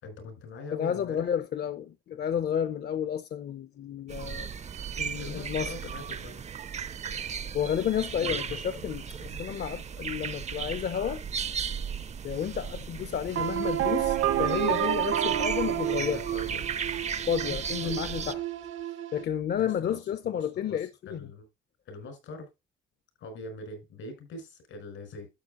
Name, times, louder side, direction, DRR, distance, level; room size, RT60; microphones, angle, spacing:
voice 1, 0.0-1.3 4.2-4.4 5.1-6.5 8.2-8.6 9.3-9.6 16.0-16.7 17.4-18.0 19.5-20.1 20.3-21.5 21.9-22.5 23.2-25.3, left 2 dB, 85° left, 5.8 m, -43 dB
voice 2, 0.7-4.5 5.0-5.7 7.5-11.2 12.2-16.2 17.3-18.4 19.1-21.3, left 9 dB, 55° left, 0.7 m, -31 dB
sound 1, 4.1-18.3, right 7 dB, 35° right, 0.5 m, -36 dB
sound 2, 13.4-19.2, right 11 dB, 80° right, 0.8 m, -30 dB
12.0 x 8.3 x 2.5 m
cardioid pair, 90°, 20 cm